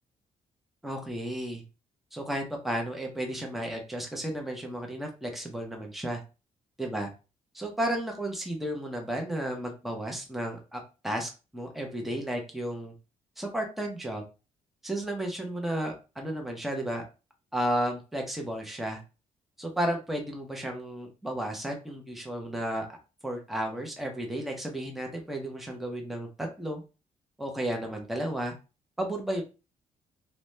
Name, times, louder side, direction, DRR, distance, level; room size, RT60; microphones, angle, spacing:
voice 1, 0.8-1.6 2.1-6.2 6.8-7.1 7.5-12.9 13.4-14.2 14.8-17.0 17.5-19.0 19.6-23.0 23.2-26.8 27.4-28.5 29.0-29.4, right 1 dB, ahead, 1 dB, 0.5 m, -33 dB
2.7 x 2.1 x 3.1 m, 0.31 s
cardioid pair, 165°, 13 cm